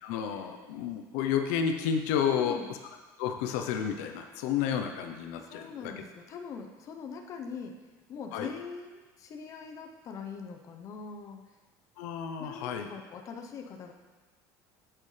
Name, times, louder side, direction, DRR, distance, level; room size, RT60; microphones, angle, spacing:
voice 1, 0.0-2.6 3.2-5.9 8.3-8.5 12.0-12.9, left 8 dB, 85° left, 5 dB, 0.8 m, -31 dB
voice 2, 2.3-2.7 5.4-7.8 8.1-11.4 12.4-13.9, left 5 dB, 40° left, 3 dB, 0.9 m, -42 dB
10.5 x 7.7 x 3.3 m, 1.3 s
cardioid pair, 140°, 8 cm